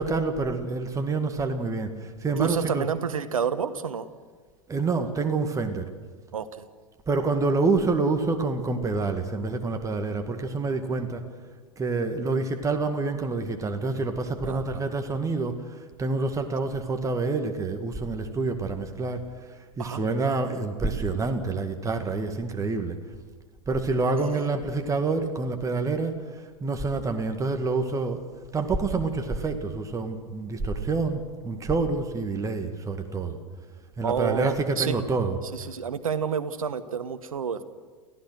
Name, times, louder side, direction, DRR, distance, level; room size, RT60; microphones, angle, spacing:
voice 1, 0.0-2.9 4.7-5.9 7.1-11.2 11.8-19.2 19.8-23.0 23.7-28.2 28.5-33.4 34.0-35.4, right 3 dB, 20° right, 6 dB, 2.1 m, -27 dB
voice 2, 2.4-4.1 6.3-6.7 14.4-14.9 19.8-20.0 24.2-24.3 34.0-35.0 35.5-37.6, right 7 dB, 75° right, 13 dB, 1.2 m, -29 dB
29.5 x 15.5 x 6.3 m, 1.4 s
figure-of-eight pair, 90°, 18 cm